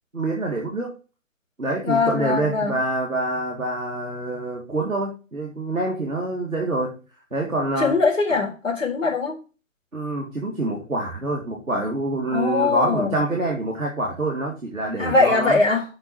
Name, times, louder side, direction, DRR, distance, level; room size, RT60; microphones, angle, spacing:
voice 1, 0.1-0.9 1.6-7.0 7.3-7.9 9.9-15.6, right 2 dB, ahead, -17 dB, 0.6 m, -26 dB
voice 2, 1.8-2.8 7.8-9.4 12.3-13.2 15.0-15.8, left 4 dB, 70° left, 1 dB, 3.9 m, -21 dB
6.2 x 5.3 x 5.5 m, 0.33 s
figure-of-eight pair, 140°, 40 cm